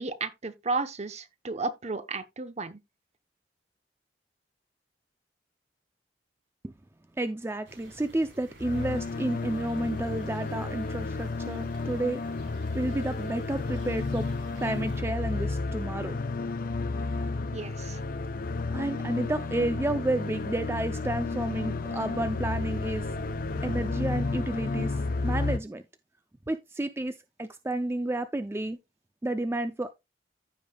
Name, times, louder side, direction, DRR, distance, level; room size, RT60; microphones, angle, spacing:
voice 1, 0.0-2.8 17.5-18.0, right 3 dB, 40° right, 0.9 m, -33 dB
voice 2, 7.2-12.2 12.7-14.3 14.6-16.2 18.7-23.1 23.6-25.8 26.5-27.1 27.4-28.8 29.2-29.9, right 1 dB, 15° right, 0.4 m, -31 dB
sound 1, 7.6-15.0, right 1 dB, 85° right, 3.8 m, -53 dB
sound 2, 8.6-25.6, left 3 dB, 55° left, 0.5 m, -32 dB
sound 3, 18.5-25.2, right 2 dB, 60° right, 1.1 m, -48 dB
15.0 x 5.2 x 2.3 m
head